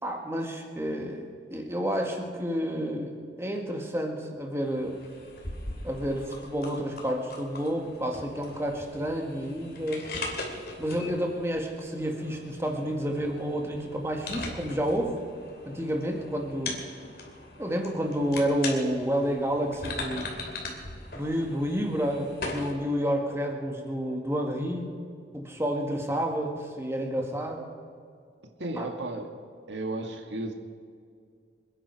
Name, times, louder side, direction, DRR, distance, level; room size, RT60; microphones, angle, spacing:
voice 1, 0.0-5.0 5.8-10.1 10.8-15.2 15.7-16.8 17.6-20.3 21.1-24.9 25.3-27.6 28.8-28.9, equal, 15° right, 2 dB, 1.9 m, -30 dB
sound 1, 4.6-22.7, left 2 dB, 55° left, 2.8 m, -40 dB
voice 2, 28.6-29.3 29.7-30.5, right 2 dB, 80° right, 4 dB, 1.9 m, -34 dB
27.5 x 10.0 x 4.8 m, 2.3 s
head